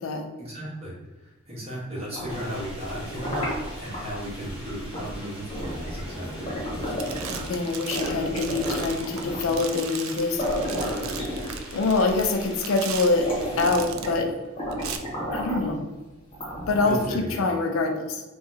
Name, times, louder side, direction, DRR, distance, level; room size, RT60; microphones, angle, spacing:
voice 1, 0.4-6.6 16.8-17.5, equal, 30° right, -6 dB, 1.1 m, -35 dB
sound 1, 2.0-4.0 4.9-5.1 5.5-7.6 7.9-9.6 10.1-10.2 10.4-11.9 12.5-12.6 13.0-14.3 14.6-15.7 16.3-17.1, equal, 25° left, 1.0 m, -32 dB
sound 2, 2.3-13.6, equal, 5° right, 0.9 m, -41 dB
sound 3, 7.0-14.2 14.7-15.0, right 8 dB, 70° right, 0.3 m, -38 dB
voice 2, 7.3-10.4 11.7-13.3 13.6-14.3 15.3-15.8 16.7-18.2, left 3 dB, 70° left, 3 dB, 0.4 m, -25 dB
3.8 x 2.2 x 2.6 m, 1.2 s
head